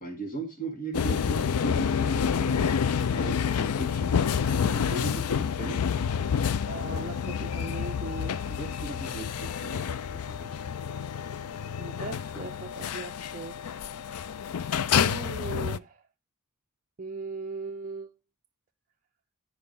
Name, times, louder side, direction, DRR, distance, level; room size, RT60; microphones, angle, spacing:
voice 1, 0.0-4.2 4.5-5.8 8.4-9.9 10.1-10.6, right 2 dB, 40° left, 1.9 m, -38 dB
sound 1, 0.9-15.8, left 7 dB, 80° left, 0.4 m, -28 dB
voice 2, 6.7-8.4 11.8-13.6 15.0-16.0 17.0-18.1, right 4 dB, 40° right, 0.5 m, -39 dB
10.5 x 4.8 x 5.3 m
head